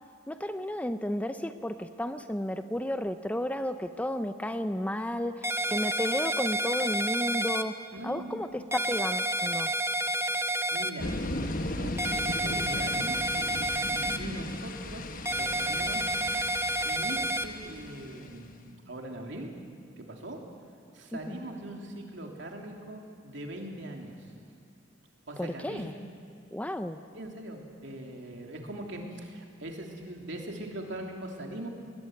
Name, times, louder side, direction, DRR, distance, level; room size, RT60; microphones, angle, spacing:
voice 1, 0.3-9.7 21.3-21.4 25.4-25.9 26.5-27.0, left 1 dB, 10° left, 9 dB, 0.6 m, -33 dB
sound 1, 5.4-7.6 8.7-10.9 12.0-14.2 15.2-17.5, right 1 dB, 15° right, 0.9 m, -29 dB
voice 2, 7.9-8.4 10.2-10.3 10.7-11.1 11.6-12.0 12.3-13.3 13.9-16.1 16.8-19.5 20.0-20.4 20.9-24.2 25.3-25.9 27.1-31.7, right 1 dB, 65° right, 1 dB, 3.1 m, -41 dB
sound 2, 11.0-18.5, left 1 dB, 45° left, 1.2 m, -37 dB
20.5 x 19.5 x 9.3 m, 2.3 s
head